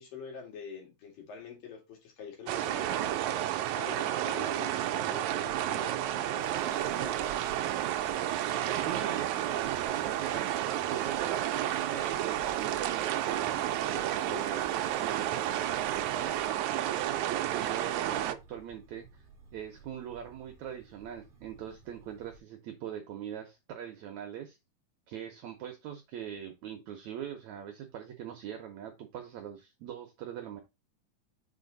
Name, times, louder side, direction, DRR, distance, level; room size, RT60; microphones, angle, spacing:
voice 1, 0.0-3.4 3.7-7.3 14.3-14.4, left 6 dB, 85° left, 3.9 m, -46 dB
sound 1, 2.5-18.3, right 12 dB, 85° right, 1.6 m, -31 dB
sound 2, 6.4-16.5, equal, 60° left, 2.6 m, -59 dB
voice 2, 8.8-10.6 10.9-19.2 19.5-24.6 25.1-30.6, right 9 dB, 70° right, 1.9 m, -42 dB
sound 3, 11.6-22.4, right 4 dB, 45° right, 0.6 m, -57 dB
6.4 x 4.4 x 3.9 m
omnidirectional pair, 3.9 m